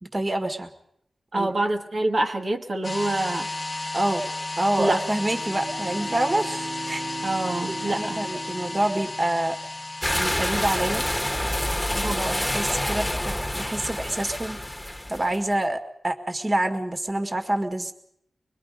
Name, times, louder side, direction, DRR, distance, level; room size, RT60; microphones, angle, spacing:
voice 1, 0.0-0.7 1.3-1.5 3.9-4.2 4.6-7.0 7.7-9.6 10.2-11.1 11.9-14.6 15.1-17.9, right 1 dB, 30° right, 6 dB, 1.8 m, -27 dB
voice 2, 1.3-3.5 4.8-5.0 7.2-8.2 12.0-12.4, right 2 dB, 65° right, 2 dB, 1.7 m, -26 dB
sound 1, 2.8-12.2, left 2 dB, 35° left, 0.8 m, -34 dB
Bowed string instrument, 5.1-9.8, right 3 dB, 80° right, 2.4 m, -39 dB
sound 2, 10.0-15.4, left 1 dB, 10° left, 1.4 m, -27 dB
24.5 x 21.0 x 5.3 m, 0.74 s
wide cardioid pair, 75°, 0 cm